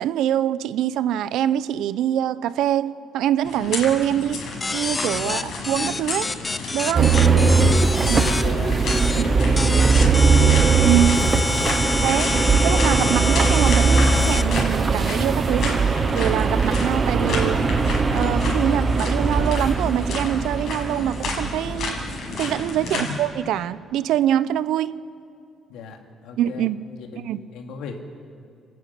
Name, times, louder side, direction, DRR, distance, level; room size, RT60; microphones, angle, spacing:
voice 1, 0.0-4.5 4.7-6.3 6.7-7.2 8.1-8.3 9.1-9.3 10.8-11.2 12.0-17.6 18.1-22.0 22.3-25.0 26.4-26.8 27.2-27.4, right 11 dB, 80° right, 16 dB, 0.6 m, -24 dB
sound 1, 3.4-23.2, left 3 dB, 55° left, 5.6 m, -32 dB
sound 2, 4.6-8.4 8.9-9.2 9.6-14.4, left 3 dB, 15° left, 0.7 m, -27 dB
voice 2, 5.1-5.5 7.1-10.3 10.8-11.1 22.8-23.2 25.7-28.0, left 5 dB, 90° left, 3 dB, 2.5 m, -37 dB
sound 3, 6.9-22.1, right 4 dB, 25° right, 0.8 m, -20 dB
29.5 x 10.5 x 9.5 m, 2.4 s
cardioid pair, 155°, 0 cm